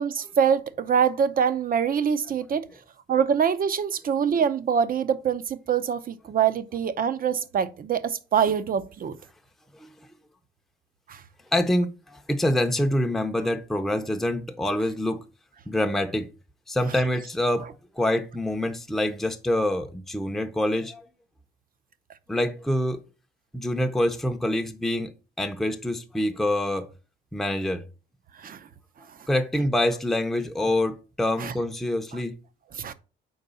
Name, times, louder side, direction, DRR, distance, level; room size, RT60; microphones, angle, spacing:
voice 1, 0.0-2.6 3.1-9.2 11.1-11.2 28.4-28.7 31.4-31.5 32.7-32.9, right 7 dB, 45° right, 0.6 m, -24 dB
voice 2, 11.5-15.2 15.7-16.3 16.7-17.7 18.0-21.1 22.3-23.0 23.5-25.1 25.4-26.9 27.3-27.8 29.3-32.3, left 1 dB, ahead, 0.6 m, -26 dB
4.5 x 4.0 x 5.4 m
cardioid pair, 90°, 20 cm